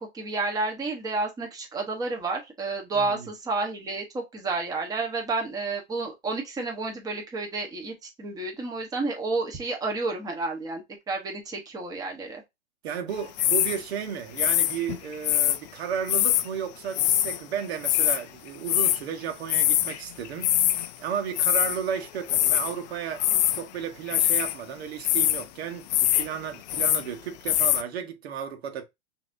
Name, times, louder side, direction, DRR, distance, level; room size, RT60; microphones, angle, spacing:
voice 1, 0.0-12.4, right 3 dB, 10° right, 1.1 m, -30 dB
voice 2, 2.9-3.3 12.8-20.6 21.0-23.2 23.5-28.8, right 8 dB, 70° right, 1.4 m, -33 dB
sound 1, 13.4-13.8 14.4-15.6 16.1-16.5 16.9-17.4 17.6-18.2 18.7-19.0 19.5-20.0 20.3-20.9 21.4-21.8 22.3-22.7 23.1-23.6 24.1-24.6 25.0-25.4 25.9-26.3 26.5-27.1 27.5-27.8, left 13 dB, 40° left, 0.4 m, -23 dB
5.8 x 2.9 x 2.6 m
supercardioid pair, 155°, 33 cm